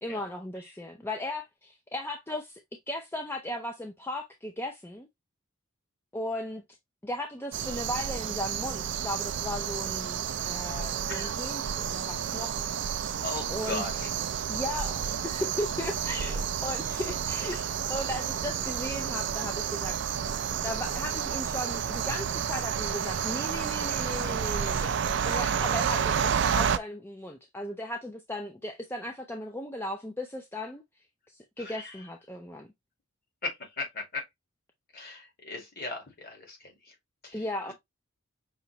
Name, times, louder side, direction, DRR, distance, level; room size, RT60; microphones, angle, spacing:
voice 1, 0.0-2.6 2.9-5.1 6.1-6.6 7.0-13.0 13.5-14.0 14.5-17.6 17.9-19.9 20.6-24.9 25.2-30.8 31.3-32.7 37.3-37.7, left 1 dB, 10° left, 0.5 m, -36 dB
sound 1, 7.5-26.8, right 7 dB, 55° right, 0.4 m, -30 dB
voice 2, 13.2-14.1 17.5-17.7 31.6-32.0 33.4-34.2 34.9-36.9 37.2-37.7, left 3 dB, 45° left, 2.1 m, -38 dB
5.6 x 3.0 x 2.8 m
head